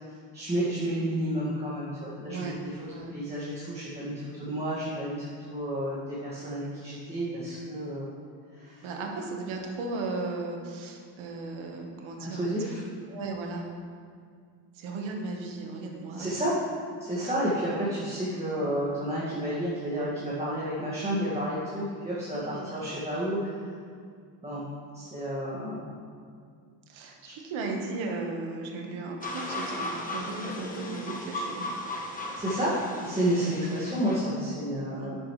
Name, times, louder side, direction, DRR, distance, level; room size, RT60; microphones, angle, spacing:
voice 1, 0.3-2.8 3.1-8.1 8.6-8.9 12.2-12.8 16.2-16.6 17.0-23.6 24.4-24.6 24.9-25.8 27.2-27.3 32.4-35.2, right 1 dB, 15° right, -9 dB, 2.0 m, -31 dB
voice 2, 2.3-2.6 2.9-3.2 8.8-12.7 13.1-13.7 14.7-16.3 17.2-17.3 22.5-22.7 26.9-31.7 33.3-33.5 34.9-35.2, right 3 dB, 80° right, 1 dB, 1.6 m, -36 dB
sound 1, 29.2-34.2, left 1 dB, 15° left, 1.2 m, -36 dB
11.5 x 8.4 x 3.3 m, 2.2 s
cardioid pair, 145°, 47 cm